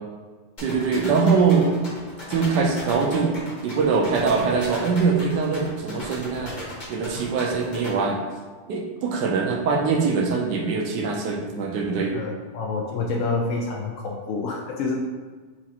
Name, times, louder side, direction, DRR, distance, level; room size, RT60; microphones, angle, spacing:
sound 1, 0.6-7.9, left 1 dB, 35° left, 0.9 m, -37 dB
voice 1, 0.6-1.7 2.3-3.4 3.6-6.5 6.9-8.2 8.7-12.2, right 5 dB, 75° right, 1 dB, 1.3 m, -22 dB
voice 2, 12.1-14.9, left 3 dB, 80° left, -1 dB, 0.7 m, -28 dB
6.0 x 2.5 x 2.8 m, 1.4 s
omnidirectional pair, 1.9 m